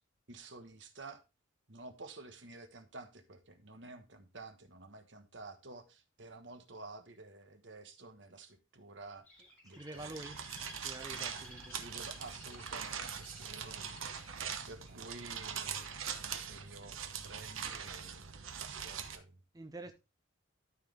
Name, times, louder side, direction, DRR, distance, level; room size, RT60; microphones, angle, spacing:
voice 1, 0.3-1.2 1.7-10.2 11.8-14.4 14.7-18.3 18.6-19.3, right 3 dB, 60° right, 1.3 m, -51 dB
Bird, 9.3-15.3 15.9-16.3, left 1 dB, 10° left, 3.3 m, -55 dB
voice 2, 9.7-10.4 10.8-11.7 19.5-19.9, right 2 dB, 20° right, 0.5 m, -46 dB
sound 1, 10.0-19.2, right 7 dB, 80° right, 1.1 m, -42 dB
12.5 x 4.7 x 3.6 m
head